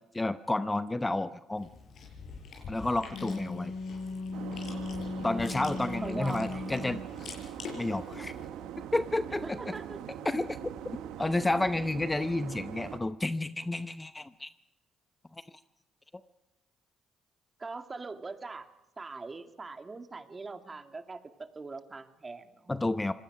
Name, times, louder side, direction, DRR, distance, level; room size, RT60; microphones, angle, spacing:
voice 1, 0.1-1.7 2.7-3.7 5.2-7.0 7.7-8.3 8.9-9.7 10.2-10.5 11.2-14.5 22.7-23.1, left 2 dB, 15° left, 12 dB, 0.8 m, -30 dB
Chewing mastication, 1.5-8.5, left 4 dB, 60° left, 7.5 m, -46 dB
Wind instrument woodwind instrument, 2.9-7.1, left 3 dB, 80° left, 6.6 m, -37 dB
sound 1, 4.3-13.0, right 10 dB, 80° right, 1.2 m, -42 dB
voice 2, 6.0-6.7 9.4-10.0 17.6-18.7 19.0-22.7, right 3 dB, 30° right, 7 dB, 2.2 m, -41 dB
25.5 x 19.0 x 6.0 m, 1.0 s
supercardioid pair, 70°, 0 cm